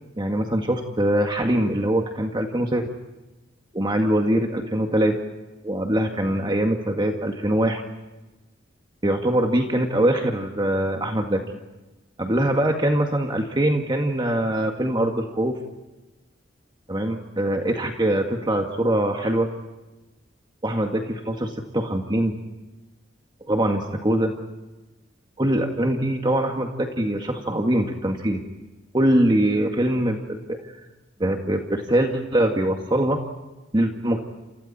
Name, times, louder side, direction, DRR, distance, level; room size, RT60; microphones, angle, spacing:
voice 1, 0.2-2.9 3.7-5.1 5.6-7.8 9.0-11.4 12.2-15.5 16.9-19.5 20.6-22.4 23.5-24.4 25.4-28.4 28.9-30.6 31.2-33.2 33.7-34.2, right 1 dB, 25° right, 3 dB, 1.9 m, -23 dB
29.5 x 29.0 x 4.3 m, 1.1 s
head